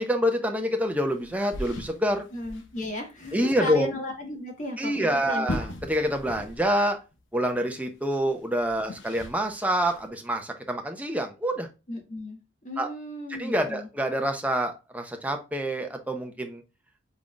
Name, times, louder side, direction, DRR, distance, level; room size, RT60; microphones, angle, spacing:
voice 1, 0.0-2.3 3.3-3.9 4.8-7.0 7.3-11.7 12.8-12.9 13.3-16.6, equal, 10° right, 4 dB, 0.7 m, -27 dB
sound 1, 0.9-2.9 3.2-3.3 3.7-3.8 5.2-6.9 7.1-7.2 8.1-10.1, left 1 dB, 70° left, 0.9 m, -39 dB
voice 2, 2.3-5.5 11.9-12.4 12.6-13.9, left 1 dB, 40° left, 2 dB, 1.6 m, -35 dB
5.7 x 3.7 x 2.4 m, 0.29 s
head